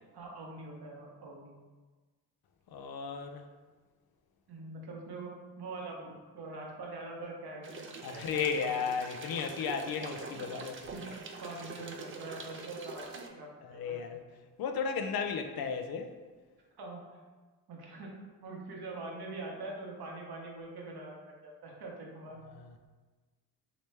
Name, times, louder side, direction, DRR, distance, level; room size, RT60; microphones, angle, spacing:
voice 1, 0.1-1.6 4.5-8.8 10.3-10.5 10.9-14.0 16.8-17.1 17.7-22.4, right 2 dB, 65° right, -1 dB, 0.9 m, -44 dB
voice 2, 2.7-3.4 8.0-10.8 13.6-14.2 14.6-16.1, left 6 dB, 60° left, 6 dB, 0.5 m, -34 dB
sound 1, 7.6-13.3, right 4 dB, 30° right, 0.4 m, -45 dB
3.0 x 3.0 x 3.2 m, 1.3 s
supercardioid pair, 60°, 41 cm